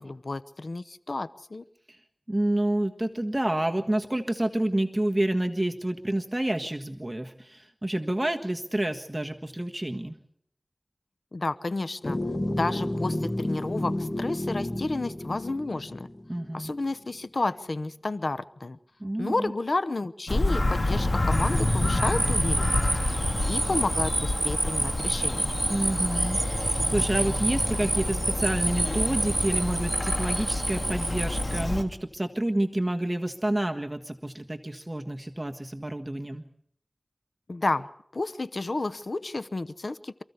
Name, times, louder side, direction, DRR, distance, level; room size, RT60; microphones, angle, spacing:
voice 1, 0.0-1.6 11.3-12.2 12.5-16.1 16.5-18.8 19.2-22.9 23.5-25.6 37.5-37.9 38.1-40.2, left 2 dB, 80° left, 14 dB, 0.8 m, -31 dB
voice 2, 2.3-10.1 16.3-16.7 19.0-19.5 25.7-36.4, right 1 dB, 25° right, 4 dB, 1.5 m, -29 dB
sound 1, 12.0-16.7, left 1 dB, 35° left, 2.1 m, -31 dB
Bird vocalization bird call bird song, 20.3-31.8, left 2 dB, 55° left, 2.2 m, -28 dB
sound 2, 21.3-31.6, right 2 dB, 75° right, 0.9 m, -30 dB
27.5 x 15.0 x 8.3 m, 0.70 s
wide cardioid pair, 40°, 0 cm